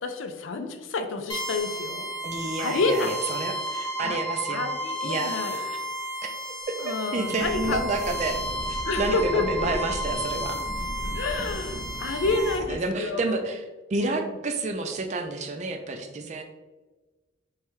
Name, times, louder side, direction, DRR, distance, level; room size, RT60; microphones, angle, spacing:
voice 1, 0.0-2.1 2.6-3.2 4.0-4.2 4.5-5.6 6.8-7.8 8.8-9.7 11.1-13.4 14.0-14.2, left 3 dB, 75° left, 7 dB, 0.4 m, -29 dB
sound 1, 1.3-12.5, equal, 25° left, 0.9 m, -33 dB
voice 2, 2.2-4.6 5.0-5.8 6.9-8.4 8.7-10.6 12.1-13.6 13.9-16.4, right 3 dB, 35° right, 6 dB, 0.4 m, -30 dB
sound 2, 7.4-12.8, equal, 10° right, 0.8 m, -36 dB
3.4 x 3.2 x 3.1 m, 1.2 s
head